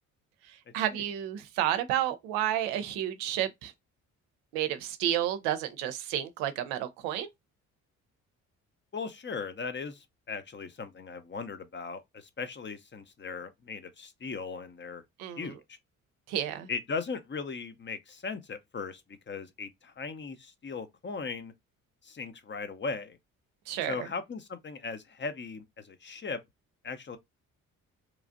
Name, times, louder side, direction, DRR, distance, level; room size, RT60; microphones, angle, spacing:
voice 1, 0.7-3.7 4.5-7.3 15.2-15.6 16.3-16.7 23.7-24.1, right 11 dB, 85° right, 0.6 m, -31 dB
voice 2, 8.9-15.0 15.4-15.8 16.7-19.0 19.3-21.5 22.0-23.2 23.8-26.4 26.8-27.2, left 4 dB, 30° left, 0.7 m, -38 dB
3.1 x 2.4 x 2.5 m
hypercardioid pair, 50°, 38 cm